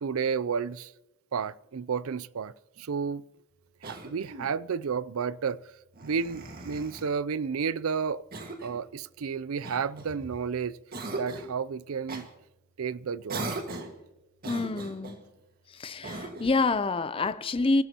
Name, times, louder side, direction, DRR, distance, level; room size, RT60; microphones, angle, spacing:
voice 1, 0.0-0.9 1.3-3.2 3.8-5.7 6.0-8.3 8.6-10.8 11.1-12.3 12.8-13.6, right 6 dB, 75° right, 0.5 m, -31 dB
Cough, 3.8-4.6 5.9-7.1 8.3-8.8 9.6-10.5 10.9-11.5 12.1-12.3 13.3-14.0 14.4-15.2 16.0-16.6, right 2 dB, 45° right, 1.7 m, -39 dB
voice 2, 14.4-15.2 15.7-17.8, left 3 dB, 25° left, 0.5 m, -27 dB
29.0 x 15.0 x 2.9 m
head